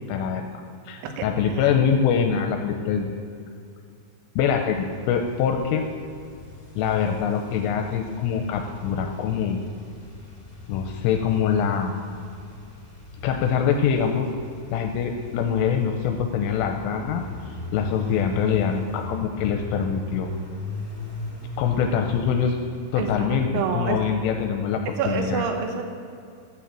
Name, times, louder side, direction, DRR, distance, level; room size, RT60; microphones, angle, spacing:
voice 1, 0.1-0.4 0.9-3.2 4.4-5.9 6.8-9.6 10.7-11.9 13.2-14.3 14.7-17.3 17.7-20.3 21.6-22.6 22.9-25.4, left 7 dB, 85° left, 4 dB, 3.1 m, -24 dB
voice 2, 1.0-1.6 23.0-24.0 25.0-25.8, right 6 dB, 75° right, 4 dB, 3.4 m, -28 dB
sound 1, 4.7-23.3, left 2 dB, 20° left, 2.2 m, -39 dB
12.5 x 6.8 x 7.4 m, 2.4 s
omnidirectional pair, 5.8 m